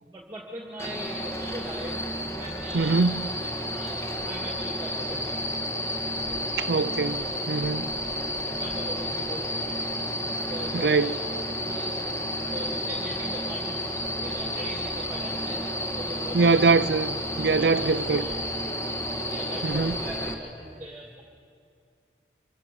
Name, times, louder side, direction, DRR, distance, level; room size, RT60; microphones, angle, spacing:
voice 1, 0.1-2.0 2.3-3.0 3.4-5.5 6.1-6.4 7.0-7.3 8.2-9.9 10.4-11.2 11.6-15.7 16.0-16.5 17.5-18.4 19.1-21.2, right 1 dB, 15° right, 2.2 m, -40 dB
sound 1, 0.8-20.3, equal, 15° left, 1.7 m, -31 dB
voice 2, 2.7-3.2 6.6-7.9 10.7-11.2 16.3-18.3 19.6-20.0, right 4 dB, 70° right, 0.5 m, -23 dB
26.0 x 23.0 x 7.0 m
head